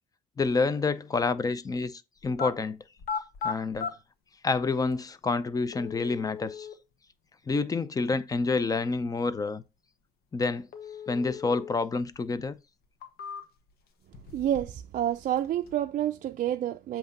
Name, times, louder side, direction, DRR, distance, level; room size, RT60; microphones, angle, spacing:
voice 1, 0.4-2.8 3.4-3.9 4.4-6.7 7.5-9.6 10.3-10.7 11.1-12.6, left 4 dB, 20° left, 0.6 m, -28 dB
sound 1, 2.2-2.5 3.0-3.9 4.9-5.0 5.7-6.7 10.7-11.7 12.1-12.2 12.8-13.7 14.1-14.9 15.1-15.7, left 6 dB, 70° left, 1.2 m, -37 dB
voice 2, 14.3-17.0, right 11 dB, 50° right, 0.4 m, -29 dB
7.8 x 2.9 x 5.2 m
cardioid pair, 110°, 17 cm